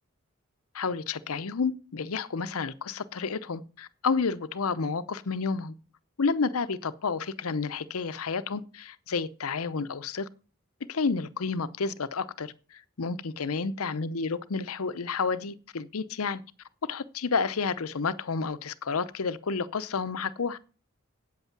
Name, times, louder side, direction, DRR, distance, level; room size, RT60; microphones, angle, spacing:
voice 1, 0.7-5.7 6.2-10.3 10.9-16.4 16.8-20.6, left 4 dB, 80° left, 0.7 m, -30 dB
8.6 x 8.2 x 6.0 m
head